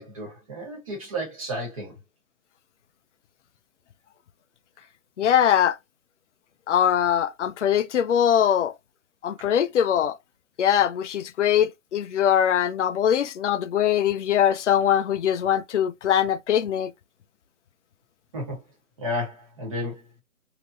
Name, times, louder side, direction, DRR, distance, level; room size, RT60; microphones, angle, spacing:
voice 1, 0.0-1.9 18.3-18.6 19.0-20.0, equal, 25° right, 1.1 m, -32 dB
voice 2, 5.2-5.8 6.7-8.7 9.2-10.2 10.6-16.9, left 9 dB, 60° left, 0.5 m, -22 dB
3.3 x 2.8 x 2.4 m
hypercardioid pair, 160°, 42 cm